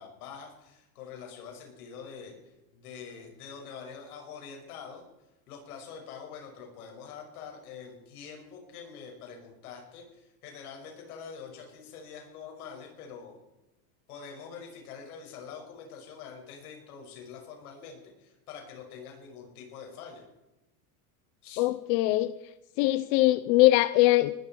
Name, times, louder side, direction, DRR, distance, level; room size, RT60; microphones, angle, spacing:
voice 1, 0.0-13.3 14.1-20.3 21.4-21.7, left 6 dB, 90° left, 1 dB, 6.3 m, -45 dB
voice 2, 21.6-22.3 22.8-24.3, left 18 dB, 55° left, 14 dB, 0.7 m, -22 dB
19.5 x 13.0 x 4.6 m, 0.98 s
supercardioid pair, 150°, 43 cm